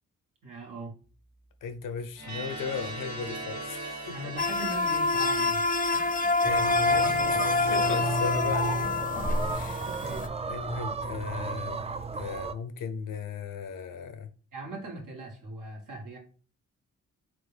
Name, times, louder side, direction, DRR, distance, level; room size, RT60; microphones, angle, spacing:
voice 1, 0.4-0.9 4.1-6.0 9.8-10.3 14.5-16.2, right 2 dB, 75° right, 1.5 m, -40 dB
voice 2, 1.6-4.2 5.8-6.1 6.4-8.9 9.5-9.9 10.5-14.3, left 6 dB, 75° left, 0.7 m, -37 dB
sound 1, 2.1-7.0, right 2 dB, 55° right, 1.7 m, -41 dB
sound 2, 4.4-10.3, left 3 dB, 25° left, 0.6 m, -26 dB
sound 3, 6.4-12.5, right 3 dB, 20° right, 0.4 m, -34 dB
3.6 x 3.5 x 3.3 m
supercardioid pair, 50°, 33 cm